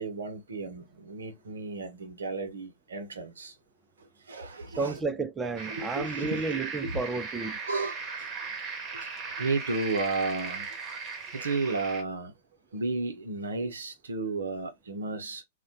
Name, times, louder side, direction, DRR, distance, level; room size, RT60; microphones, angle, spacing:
voice 1, 0.0-3.5 4.3-5.0 5.7-7.0 7.7-8.0 9.0-9.1 9.4-10.7 11.3-12.3 12.7-15.4, right 3 dB, 80° right, 0.7 m, -33 dB
voice 2, 4.8-7.6, right 4 dB, 15° right, 0.3 m, -32 dB
sound 1, 5.6-12.0, right 4 dB, 35° right, 0.8 m, -38 dB
2.2 x 2.1 x 2.6 m
hypercardioid pair, 105°, 0 cm